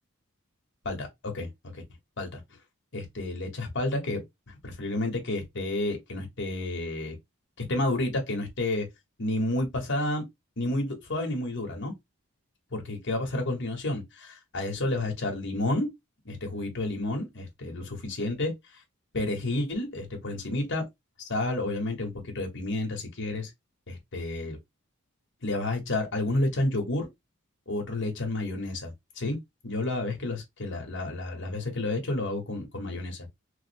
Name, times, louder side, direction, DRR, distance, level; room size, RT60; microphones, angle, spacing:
voice 1, 0.8-1.8 2.2-2.4 2.9-7.1 7.6-8.9 9.2-10.2 10.6-11.9 12.7-15.9 16.2-18.8 19.1-20.8 21.2-23.5 23.9-24.6 25.4-27.1 27.7-29.4 29.6-33.3, left 2 dB, 60° left, 1.3 m, -30 dB
3.4 x 2.1 x 3.3 m
head